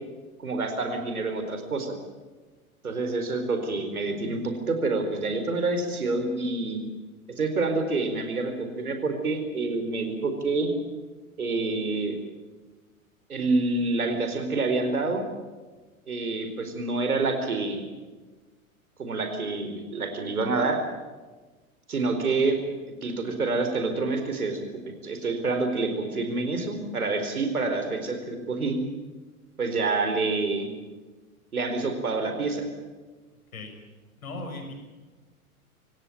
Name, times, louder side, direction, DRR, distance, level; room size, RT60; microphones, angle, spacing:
voice 1, 0.4-2.0 2.8-6.8 7.4-10.7 11.4-12.2 13.3-15.2 16.1-17.9 19.0-20.8 21.9-22.6 23.0-28.8 29.6-30.7 31.5-32.7, right 3 dB, 75° right, 6 dB, 4.5 m, -27 dB
voice 2, 34.2-34.7, left 2 dB, 70° left, 4 dB, 6.6 m, -37 dB
26.5 x 17.0 x 9.0 m, 1.3 s
figure-of-eight pair, 90°, 44 cm